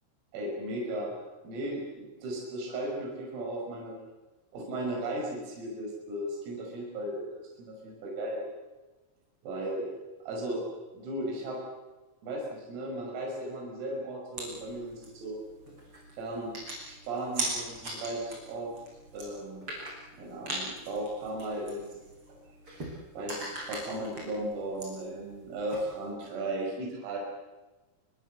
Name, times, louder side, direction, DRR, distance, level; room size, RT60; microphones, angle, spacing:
voice 1, 0.3-1.1 1.4-4.0 4.5-8.5 9.4-9.9 10.3-10.7 10.9-11.6 12.2-15.4 16.2-16.5 16.9-18.7 19.1-19.8 20.2-22.0 22.3-22.4 22.7-27.2, right 1 dB, 80° right, -1 dB, 8.6 m, -36 dB
sound 1, 14.3-26.1, right 1 dB, 25° right, 8.7 m, -41 dB
28.5 x 25.5 x 7.8 m, 1.2 s
omnidirectional pair, 6.0 m